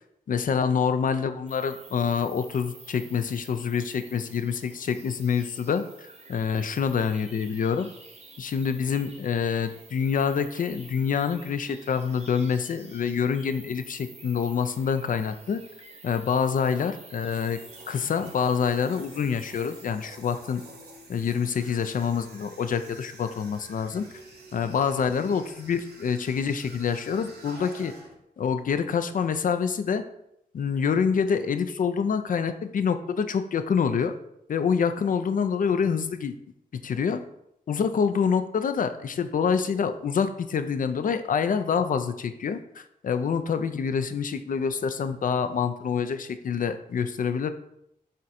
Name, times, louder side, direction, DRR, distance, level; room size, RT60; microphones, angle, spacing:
voice 1, 0.3-7.9 8.4-15.6 16.0-17.6 17.9-20.6 21.1-24.1 24.5-27.9 28.4-30.0 30.5-34.1 34.5-36.4 36.7-37.2 37.7-47.5, left 6 dB, 55° left, 10 dB, 0.4 m, -26 dB
sound 1, 1.5-19.9, right 3 dB, 45° right, 0.8 m, -49 dB
sound 2, 17.3-28.2, right 2 dB, 85° right, 0.8 m, -49 dB
4.3 x 2.5 x 4.1 m, 0.79 s
cardioid pair, 65°, 16 cm